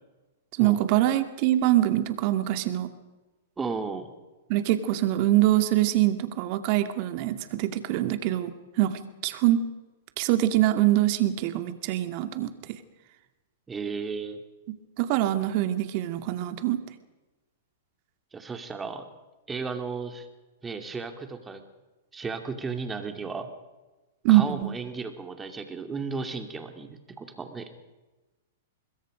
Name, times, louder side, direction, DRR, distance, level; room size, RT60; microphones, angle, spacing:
voice 1, 0.6-2.9 4.5-9.7 10.2-12.5 15.0-16.8 24.2-24.8, right 14 dB, 45° right, 9 dB, 2.2 m, -24 dB
voice 2, 3.6-4.1 13.7-14.4 18.3-19.0 19.5-20.3 20.6-21.6 22.1-23.5 24.3-27.7, right 4 dB, 15° right, 6 dB, 2.7 m, -34 dB
25.5 x 21.5 x 5.2 m, 1.1 s
hypercardioid pair, 130°, 0 cm